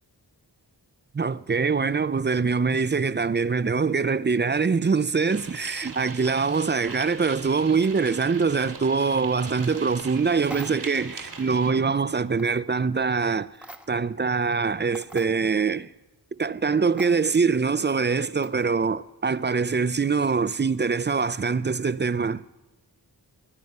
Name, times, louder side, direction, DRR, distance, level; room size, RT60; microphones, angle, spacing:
voice 1, 1.1-13.5 13.9-15.9 16.4-22.4, right 5 dB, 25° right, 0.4 m, -24 dB
sound 1, 5.3-11.7, right 4 dB, 85° right, 2.7 m, -41 dB
sound 2, 10.4-11.0 12.4-12.6 13.5-14.1 14.5-14.6 14.9-15.3 17.0-17.1 18.4-18.7, right 1 dB, 5° right, 1.0 m, -43 dB
21.5 x 9.3 x 5.5 m
cardioid pair, 55°, 42 cm